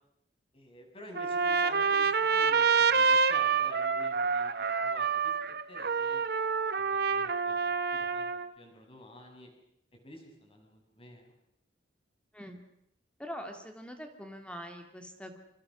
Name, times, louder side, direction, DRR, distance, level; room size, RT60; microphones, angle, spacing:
voice 1, 0.5-6.4 6.8-9.5 10.0-11.3, left 1 dB, 30° left, 2 dB, 6.7 m, -51 dB
Trumpet, 1.1-8.5, right 5 dB, 60° right, 1.1 m, -27 dB
voice 2, 13.2-15.4, equal, 5° left, 5 dB, 2.5 m, -43 dB
28.5 x 25.5 x 6.3 m, 0.77 s
head